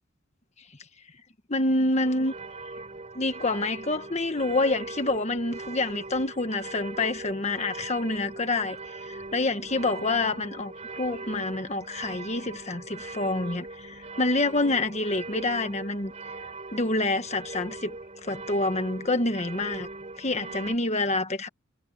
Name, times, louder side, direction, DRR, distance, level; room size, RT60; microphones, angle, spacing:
voice 1, 1.5-2.3 3.1-8.8 9.0-16.1 16.7-17.9 18.2-19.9 20.2-21.5, left 2 dB, 35° left, 1.5 m, -27 dB
sound 1, 2.0-20.7, right 3 dB, 35° right, 3.3 m, -40 dB
head